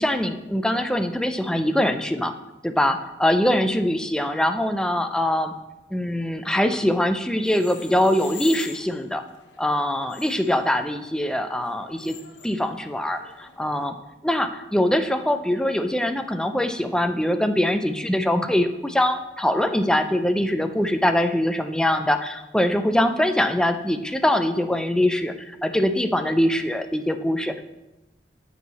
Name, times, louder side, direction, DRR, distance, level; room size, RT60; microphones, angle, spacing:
voice 1, 0.0-2.3 2.6-5.5 5.9-9.2 9.6-12.2 12.4-14.0 14.2-27.6, left 1 dB, 5° left, 7 dB, 0.4 m, -23 dB
sound 1, 7.4-13.9, left 7 dB, 85° left, 0.8 m, -45 dB
8.2 x 4.6 x 4.1 m, 0.98 s
head